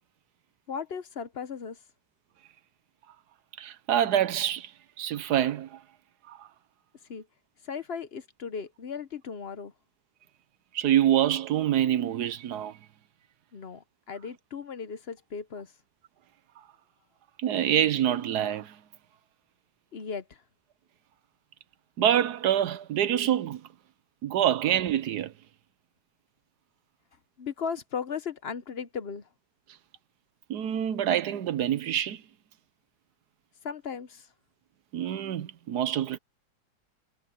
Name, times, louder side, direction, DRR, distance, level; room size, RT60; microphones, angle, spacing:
voice 1, 0.7-1.8 7.1-7.3 7.6-9.7 13.5-15.7 19.9-20.4 27.4-29.3 33.6-34.3, left 6 dB, 50° left, 0.8 m, -36 dB
voice 2, 3.6-4.7 5.0-5.8 6.3-6.4 10.7-12.7 17.4-18.7 22.0-23.6 24.2-25.3 30.5-32.2 34.9-36.2, right 10 dB, 80° right, 1.4 m, -26 dB
omnidirectional pair, 1.7 m